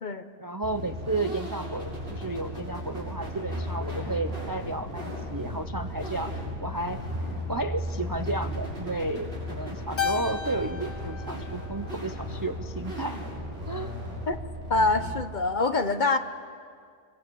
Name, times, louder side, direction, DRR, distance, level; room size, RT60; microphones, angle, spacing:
voice 1, 0.4-13.3 13.7-14.0, right 2 dB, 25° right, 9 dB, 0.5 m, -33 dB
sound 1, 0.6-15.1, equal, 50° right, 7.1 m, -35 dB
Keyboard (musical), 10.0-12.5, left 8 dB, 65° left, 1.6 m, -34 dB
voice 2, 14.7-16.2, left 3 dB, 40° left, 9 dB, 1.1 m, -25 dB
26.5 x 22.5 x 8.6 m, 2.1 s
omnidirectional pair, 1.2 m